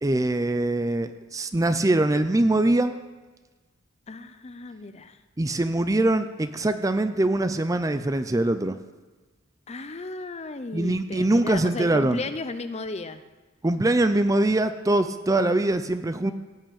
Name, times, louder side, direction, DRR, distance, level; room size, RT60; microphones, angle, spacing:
voice 1, 0.0-2.9 5.4-8.8 10.7-12.2 13.6-16.3, right 2 dB, 15° right, 10 dB, 0.5 m, -23 dB
voice 2, 4.1-5.2 9.7-13.2, left 3 dB, 30° left, 11 dB, 0.6 m, -35 dB
16.5 x 5.7 x 8.6 m, 1.2 s
head